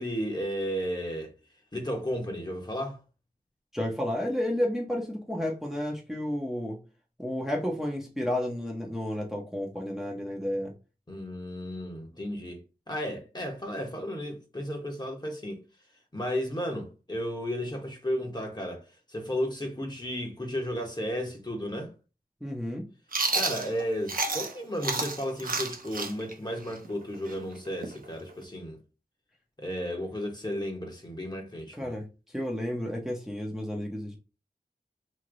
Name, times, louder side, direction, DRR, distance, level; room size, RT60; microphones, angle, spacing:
voice 1, 0.0-1.3 1.7-3.0 11.1-15.6 16.1-21.9 23.3-28.8 29.6-32.0, equal, 25° left, 1.2 m, -33 dB
voice 2, 3.7-6.8 7.2-10.7 22.4-22.9 31.7-34.2, left 1 dB, ahead, 0.9 m, -31 dB
Chewing mastication, 23.1-24.5 24.8-28.4, right 3 dB, 60° right, 0.8 m, -30 dB
3.2 x 2.8 x 3.8 m
wide cardioid pair, 75°, 16 cm